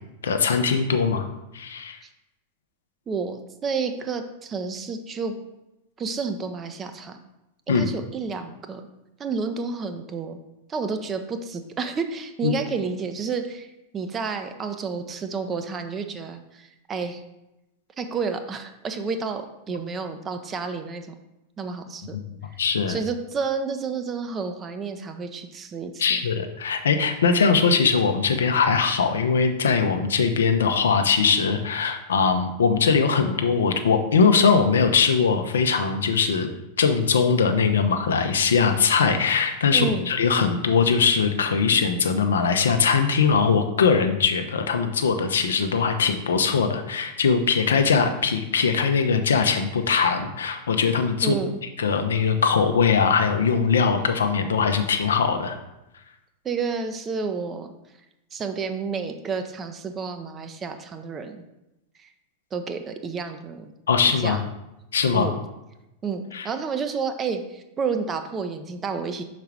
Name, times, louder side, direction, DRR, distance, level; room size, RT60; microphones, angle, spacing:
voice 1, 0.2-1.3 1.5-2.0 7.7-7.9 12.4-12.5 22.6-23.0 26.0-36.5 36.8-51.3 51.8-55.6 63.9-64.4 64.9-65.3 66.3-66.5, left 5 dB, 65° left, 7 dB, 0.6 m, -21 dB
voice 2, 3.1-5.4 6.0-7.2 7.7-8.8 9.2-10.4 10.7-13.7 13.9-17.2 18.0-21.1 21.6-22.2 22.9-26.3 39.7-40.1 51.2-51.5 56.4-57.7 58.3-61.4 62.0-62.1 62.5-63.7 64.1-64.4 65.1-65.3 66.0-69.2, right 5 dB, 25° right, 7 dB, 0.6 m, -30 dB
5.7 x 4.1 x 4.7 m, 0.93 s
figure-of-eight pair, 90°, 0 cm